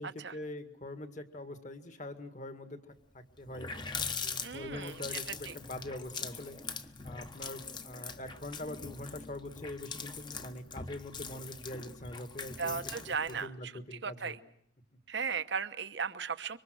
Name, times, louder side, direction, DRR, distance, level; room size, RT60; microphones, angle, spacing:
voice 1, 0.0-3.7 4.2-14.4, left 1 dB, 40° left, 8 dB, 1.9 m, -44 dB
Water tap faucet, 3.0-3.1 3.4-13.5, left 5 dB, 25° left, 1.1 m, -42 dB
voice 2, 4.4-4.9 5.5-5.6 12.6-13.5 14.0-14.4 15.1-16.6, right 6 dB, 65° right, 12 dB, 1.0 m, -36 dB
26.0 x 24.5 x 6.4 m, 0.71 s
head